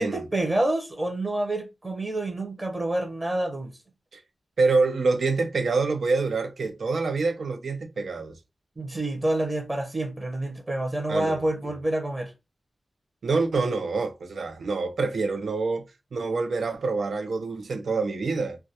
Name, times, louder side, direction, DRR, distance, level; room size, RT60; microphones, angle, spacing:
voice 1, 0.0-3.7 8.8-12.3, right 1 dB, 20° right, 0.7 m, -28 dB
voice 2, 4.6-8.3 11.1-11.4 13.2-15.8 16.1-18.6, right 4 dB, 70° right, 0.6 m, -26 dB
2.3 x 2.2 x 2.7 m
wide cardioid pair, 125°, 0 cm